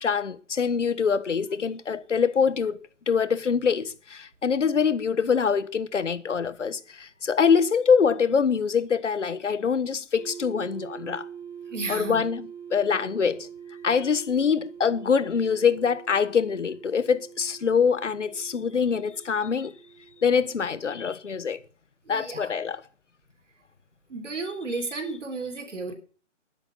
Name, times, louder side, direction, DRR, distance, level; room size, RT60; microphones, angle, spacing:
voice 1, 0.0-2.8 3.1-11.2 11.9-13.5 13.8-19.7 20.2-21.6 22.1-22.8 24.7-24.8, left 6 dB, 70° left, 1.5 m, -24 dB
sound 1, 10.1-20.8, right 8 dB, 30° right, 3.7 m, -44 dB
voice 2, 11.7-12.2 22.1-22.5 24.1-25.9, right 3 dB, 70° right, 3.8 m, -33 dB
12.5 x 10.0 x 5.7 m
hypercardioid pair, 165°, 38 cm